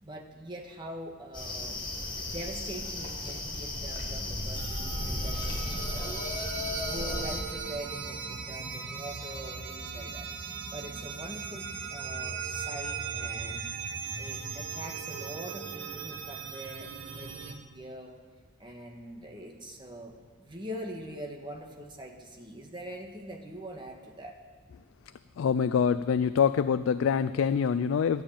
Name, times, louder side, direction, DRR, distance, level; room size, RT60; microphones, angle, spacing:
voice 1, 0.0-1.9 2.3-6.2 6.7-13.7 14.2-18.1 18.6-24.4, right 1 dB, 20° right, 1 dB, 1.4 m, -43 dB
sound 1, 1.3-7.4, left 2 dB, 20° left, 1.5 m, -34 dB
sound 2, 4.5-17.5, right 5 dB, 60° right, 1.0 m, -38 dB
voice 2, 25.4-28.2, left 7 dB, 70° left, 13 dB, 0.3 m, -25 dB
13.0 x 7.1 x 8.8 m, 1.4 s
head